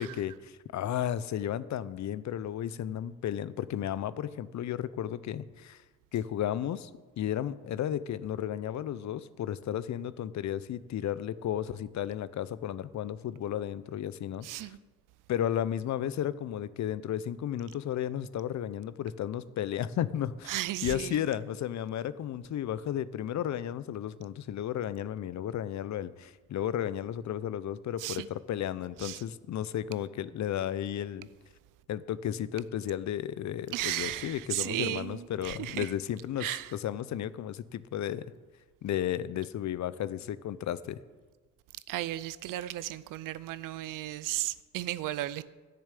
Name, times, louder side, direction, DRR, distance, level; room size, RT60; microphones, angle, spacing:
voice 1, 0.0-5.8 6.1-6.9 7.2-14.7 15.3-20.5 20.8-31.3 31.9-36.5 36.8-38.3 38.8-41.0, left 10 dB, 60° left, 0.6 m, -33 dB
voice 2, 14.4-14.8 20.5-21.2 28.0-28.3 29.0-29.2 33.7-35.9 36.4-36.8 41.9-45.4, right 15 dB, 80° right, 0.5 m, -35 dB
10.5 x 6.8 x 8.3 m
cardioid pair, 75°, 32 cm